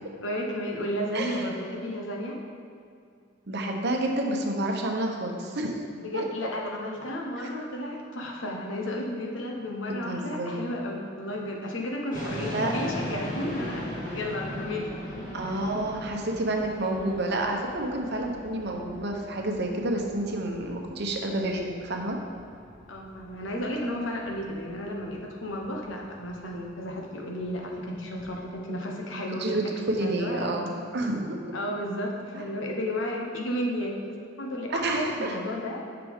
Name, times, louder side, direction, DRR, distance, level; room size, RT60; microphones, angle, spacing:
voice 1, 0.2-2.4 6.0-14.9 15.5-15.6 22.9-29.6 30.0-30.6 31.5-35.9, left 1 dB, 70° left, 0 dB, 1.1 m, -33 dB
voice 2, 1.1-1.5 3.5-5.8 6.1-6.2 7.4-7.5 10.1-10.6 12.5-12.7 15.3-22.2 29.4-31.4 32.3-32.4 34.7-35.4, right 1 dB, 55° right, 2 dB, 0.9 m, -29 dB
sound 1, 12.1-28.4, equal, 40° left, 1.7 m, -40 dB
9.6 x 5.9 x 3.6 m, 2.3 s
head